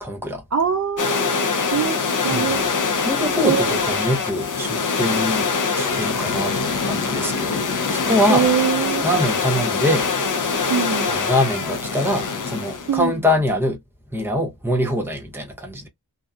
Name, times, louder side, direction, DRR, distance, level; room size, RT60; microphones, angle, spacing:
voice 1, 0.0-0.4 2.3-2.5 3.0-5.5 5.7-8.5 9.0-10.1 11.1-13.8 14.1-15.9, left 1 dB, 5° right, 0.7 m, -23 dB
voice 2, 0.5-2.7 3.4-3.8 8.3-9.0 10.7-11.1 12.9-13.2, right 8 dB, 45° right, 0.4 m, -23 dB
sound 1, 1.0-13.0, left 4 dB, 50° left, 0.6 m, -23 dB
2.6 x 2.3 x 2.3 m
wide cardioid pair, 95°, 40 cm